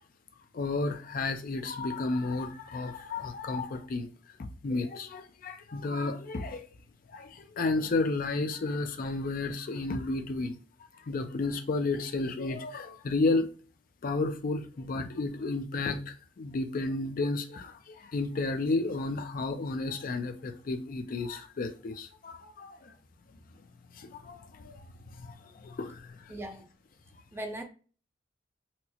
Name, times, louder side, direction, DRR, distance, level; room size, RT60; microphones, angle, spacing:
voice 1, 0.5-4.1 4.4-6.7 7.1-10.6 11.1-13.5 14.0-22.9 24.0-24.8 25.2-26.4, left 3 dB, 45° left, 0.4 m, -32 dB
voice 2, 26.3-26.7 27.3-27.6, right 1 dB, 15° right, 0.4 m, -38 dB
4.2 x 2.0 x 2.7 m
head